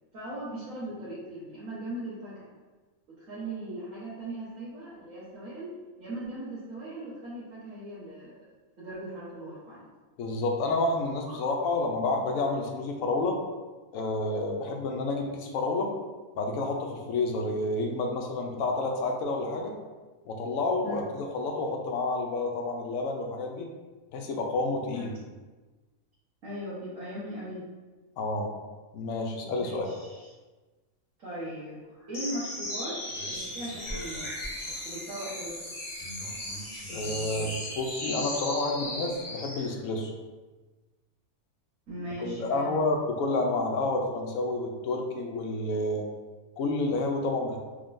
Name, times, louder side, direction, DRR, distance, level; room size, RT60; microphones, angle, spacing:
voice 1, 0.1-2.5 3.1-5.7 6.0-8.4 8.8-9.8 11.3-11.4 20.8-21.1 24.9-25.1 26.4-27.7 29.6-30.3 31.2-31.8 32.1-33.0 33.3-34.3 34.8-35.7 41.9-42.7, right 1 dB, 65° right, -11 dB, 1.5 m, -39 dB
voice 2, 10.2-13.4 13.9-15.9 16.4-19.7 20.3-23.7 24.1-25.1 28.2-28.5 28.9-29.9 36.9-40.1 42.2-46.1 46.6-47.6, left 2 dB, 70° left, 2 dB, 0.9 m, -29 dB
sound 1, 32.1-39.7, left 1 dB, 40° left, 0.4 m, -36 dB
3.6 x 3.6 x 2.6 m, 1.3 s
omnidirectional pair, 1.5 m